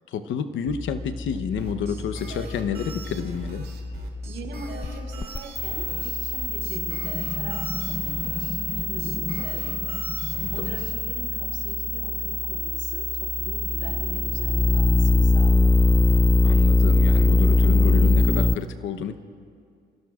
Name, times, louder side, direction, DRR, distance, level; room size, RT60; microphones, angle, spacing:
voice 1, 0.1-3.6 10.4-10.8 16.4-19.2, left 7 dB, 80° left, 10 dB, 0.9 m, -30 dB
sound 1, 0.7-18.6, left 2 dB, 20° left, 0.6 m, -23 dB
sound 2, 1.6-10.9, right 5 dB, 55° right, 2.7 m, -42 dB
voice 2, 4.2-10.0 10.5-15.8, right 4 dB, 70° right, 0 dB, 3.3 m, -41 dB
29.5 x 17.0 x 2.4 m, 2.2 s
cardioid pair, 90°, 20 cm